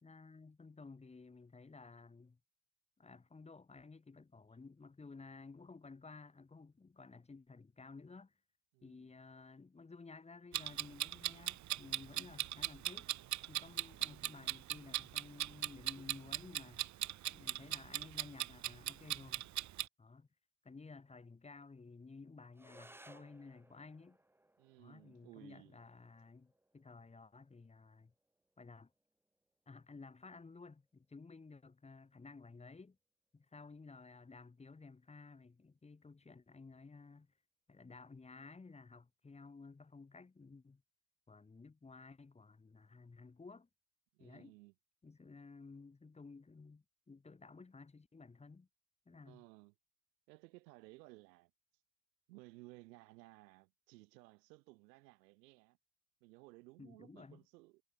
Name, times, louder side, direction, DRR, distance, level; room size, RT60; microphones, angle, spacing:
voice 1, 0.0-2.4 3.0-8.3 8.8-13.1 13.5-16.9 17.3-19.5 20.0-20.3 20.6-24.2 24.8-28.1 28.6-28.9 29.7-33.0 33.3-37.3 37.7-40.8 41.3-43.7 44.2-44.6 45.0-48.7 49.1-49.4 56.8-57.4, left 4 dB, 15° left, 3.6 m, -55 dB
voice 2, 8.7-9.1 24.6-25.8 44.1-44.7 49.2-49.7 50.3-51.8 52.3-55.8 56.2-57.8, right 23 dB, 80° right, 5.1 m, -59 dB
Clock, 10.5-19.9, right 13 dB, 35° right, 1.4 m, -39 dB
sound 1, 22.5-31.5, right 1 dB, 5° right, 4.4 m, -65 dB
supercardioid pair, 130°, 49 cm